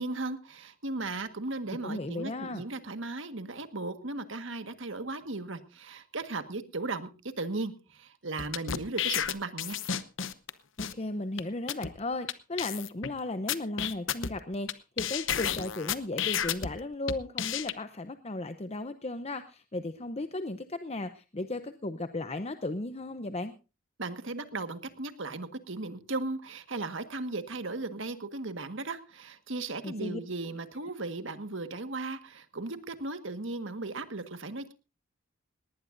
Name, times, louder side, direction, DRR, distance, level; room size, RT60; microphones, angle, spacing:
voice 1, 0.0-9.8 24.0-34.7, right 2 dB, 65° right, 9 dB, 1.6 m, -36 dB
voice 2, 1.7-2.6 10.8-23.5 29.8-30.2, left 2 dB, 30° left, 10 dB, 0.7 m, -35 dB
sound 1, 8.4-10.5 10.8-10.9 11.4-11.5 11.7-11.9 12.3-12.4 12.6-13.1 13.5-14.7 15.0-16.7 17.1-17.7, left 9 dB, 65° left, 0.9 m, -31 dB
19.0 x 19.0 x 2.6 m, 0.32 s
head